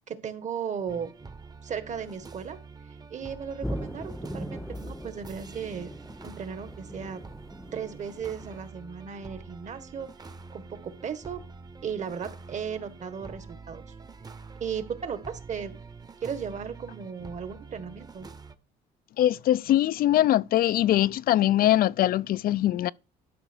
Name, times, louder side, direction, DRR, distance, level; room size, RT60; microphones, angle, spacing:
voice 1, 0.1-1.1 1.6-2.6 3.1-5.9 6.2-7.2 7.7-10.1 10.5-11.4 11.8-13.8 14.6-15.8 16.2-18.3, right 7 dB, 45° right, 1.7 m, -36 dB
sound 1, 0.9-18.6, right 4 dB, 25° right, 1.0 m, -46 dB
sound 2, 3.6-8.7, equal, ahead, 0.7 m, -39 dB
voice 2, 19.2-22.9, left 13 dB, 60° left, 0.5 m, -22 dB
12.0 x 5.9 x 4.5 m
cardioid pair, 110°, 17 cm